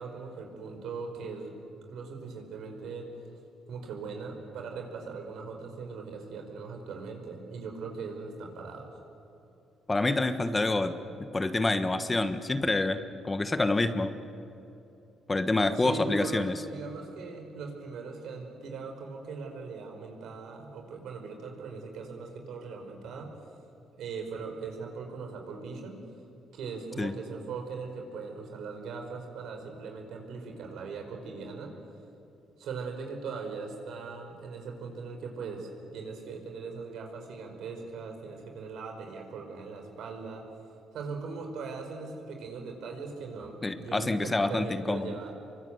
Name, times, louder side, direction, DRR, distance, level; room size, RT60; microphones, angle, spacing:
voice 1, 0.0-1.6 1.9-3.1 3.7-9.0 15.7-23.3 23.9-26.0 26.5-31.7 32.6-40.5 40.9-45.3, right 4 dB, 80° right, 3 dB, 5.2 m, -40 dB
voice 2, 9.9-11.0 11.3-14.1 15.3-16.6 27.0-27.1 43.6-45.2, left 2 dB, 20° left, 10 dB, 1.4 m, -27 dB
27.5 x 23.5 x 8.2 m, 2.8 s
cardioid pair, 90°, 0 cm